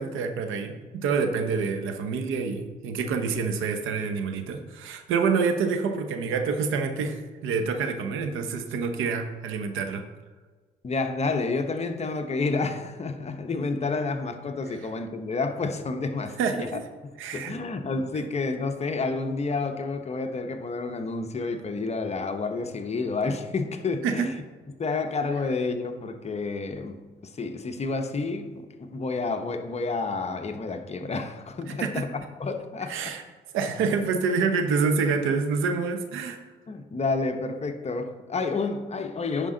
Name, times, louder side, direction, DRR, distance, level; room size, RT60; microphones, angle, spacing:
voice 1, 0.0-10.0 16.4-16.8 17.2-17.6 24.0-24.2 31.8-32.0 32.9-33.2 33.5-36.4, right 5 dB, 90° right, 7 dB, 0.9 m, -27 dB
voice 2, 10.8-24.3 24.8-27.0 27.2-33.1 36.7-39.5, left 3 dB, 35° left, 6 dB, 0.8 m, -30 dB
10.0 x 5.1 x 3.8 m, 1.4 s
cardioid pair, 90°, 20 cm